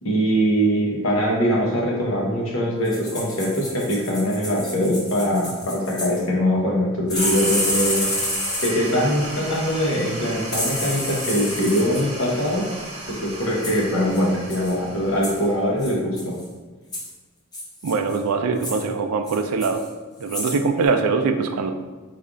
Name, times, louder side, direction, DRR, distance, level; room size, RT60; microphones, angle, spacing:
voice 1, 0.0-8.1 8.6-12.7 13.1-16.3, equal, 70° left, -2 dB, 0.8 m, -22 dB
sound 1, 2.8-6.2 7.1-8.9 10.5-12.0 13.6-13.8 14.1-14.2 14.5-14.7 15.2-15.4 15.8-16.4 16.9-17.1 17.5-18.2 18.6-18.8 19.3-19.9 20.2-20.6 20.9-21.0, left 1 dB, 15° left, 0.6 m, -29 dB
sound 2, 7.1-16.0, right 1 dB, 30° right, 0.6 m, -35 dB
voice 2, 17.8-19.8 20.2-21.7, right 4 dB, 85° right, 7 dB, 0.4 m, -22 dB
3.2 x 2.4 x 3.7 m, 1.3 s
head